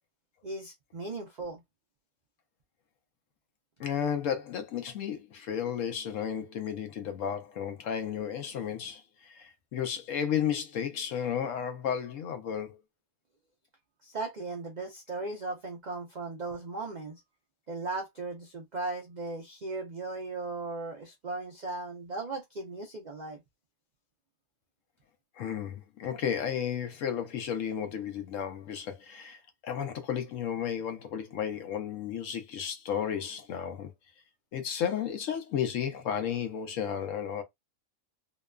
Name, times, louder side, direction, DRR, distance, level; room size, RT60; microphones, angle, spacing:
voice 1, 0.4-1.6 14.0-17.2 17.7-23.4, right 3 dB, 70° right, 0.4 m, -37 dB
voice 2, 3.8-12.8 25.4-33.9 34.5-37.4, left 8 dB, 70° left, 0.9 m, -33 dB
2.9 x 2.2 x 2.2 m
omnidirectional pair, 1.5 m